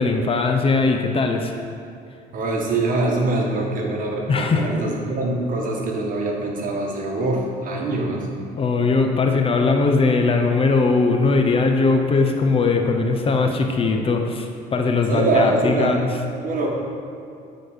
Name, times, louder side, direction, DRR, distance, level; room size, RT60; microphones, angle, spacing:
voice 1, 0.0-1.5 4.3-4.7 8.6-16.1, left 3 dB, 35° left, 4 dB, 0.6 m, -20 dB
voice 2, 2.3-8.3 15.1-16.0 16.4-16.7, right 2 dB, 55° right, -1 dB, 1.5 m, -23 dB
9.2 x 4.1 x 5.0 m, 2.6 s
cardioid pair, 110°, 17 cm